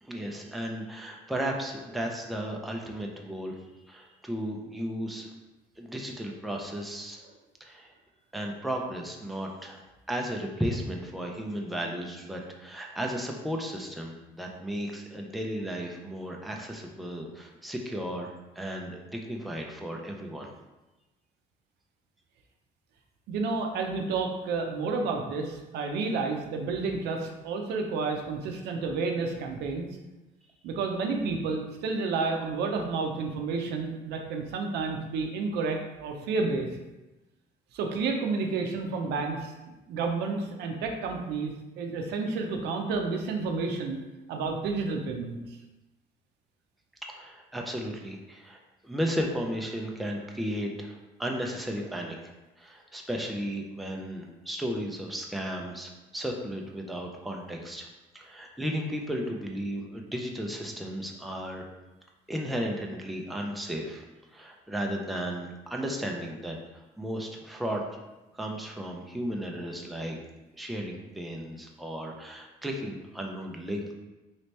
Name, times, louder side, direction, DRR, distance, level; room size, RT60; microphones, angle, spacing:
voice 1, 0.0-3.6 3.9-5.3 5.8-7.2 7.6-7.9 8.3-9.8 10.1-20.5 47.0-57.9 58.1-61.7 62.3-64.0 64.3-67.8 68.3-70.2 70.6-73.9, equal, ahead, 0 dB, 0.4 m, -34 dB
voice 2, 23.3-29.9 30.6-36.7 37.7-39.5 39.9-44.0 44.3-45.4, right 4 dB, 80° right, 3 dB, 0.6 m, -30 dB
3.2 x 2.8 x 3.2 m, 1.1 s
cardioid pair, 110°, 17 cm